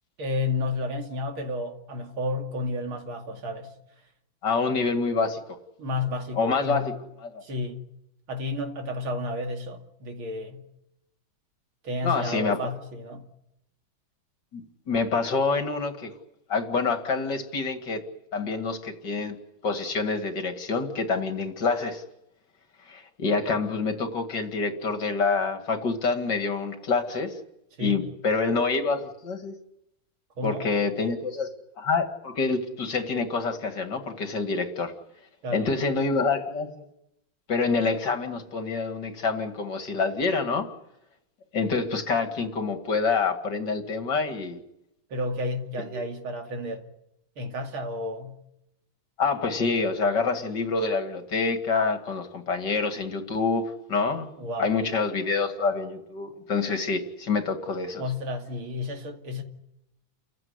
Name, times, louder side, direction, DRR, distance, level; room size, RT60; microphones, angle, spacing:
voice 1, 0.2-3.7 5.8-6.9 7.4-7.9 8.3-10.6 11.8-13.3 27.8-28.0 30.4-30.7 35.4-35.7 45.1-46.9 47.4-48.4 54.4-54.7 58.0-59.4, left 2 dB, 85° right, 3.3 m, -31 dB
voice 2, 4.4-5.4 6.4-6.9 7.3-7.4 12.0-12.6 14.5-16.1 16.5-18.0 18.3-19.4 19.6-22.0 22.9-27.3 27.8-29.5 30.4-34.9 35.5-36.8 37.5-40.7 41.5-44.6 45.9-46.0 49.2-54.3 54.6-58.0, left 4 dB, 55° left, 2.8 m, -27 dB
30.0 x 15.5 x 9.6 m
omnidirectional pair, 2.2 m